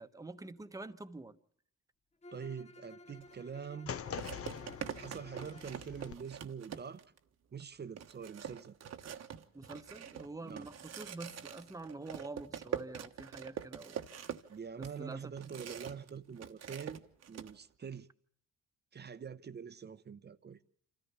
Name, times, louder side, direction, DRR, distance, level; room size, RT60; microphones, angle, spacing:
voice 1, 0.0-1.4 9.5-14.0 14.8-15.3, right 2 dB, 10° right, 1.1 m, -46 dB
Bowed string instrument, 2.2-5.8, left 2 dB, 20° left, 0.9 m, -55 dB
voice 2, 2.3-4.0 5.0-7.0 7.5-8.8 10.4-10.7 14.5-17.0 17.3-18.1 18.9-20.6, right 6 dB, 35° right, 0.9 m, -45 dB
sound 1, 3.2-3.4 4.2-7.2 7.6-7.7 8.0-16.1 16.4-17.5, right 9 dB, 60° right, 1.3 m, -44 dB
sound 2, 3.9-6.1, left 7 dB, 50° left, 1.0 m, -44 dB
26.5 x 14.0 x 7.1 m
cardioid pair, 90°, 30 cm